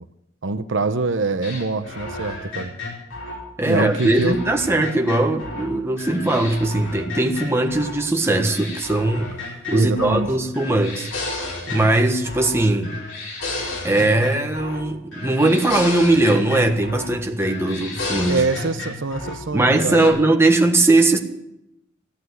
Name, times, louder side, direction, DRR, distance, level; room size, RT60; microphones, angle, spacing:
voice 1, 0.4-2.7 3.6-4.4 9.7-10.3 18.3-20.2, right 3 dB, 70° right, 10 dB, 0.8 m, -24 dB
sound 1, 1.4-5.7 6.0-8.0 8.3-10.3 10.5-12.6 12.8-14.9 15.1-17.1 17.4-19.4 19.7-20.1, left 2 dB, 80° left, 4.7 m, -32 dB
voice 2, 3.6-12.9 13.8-18.4 19.5-21.2, right 2 dB, 15° right, 3 dB, 1.4 m, -20 dB
15.0 x 11.0 x 7.9 m, 0.84 s
head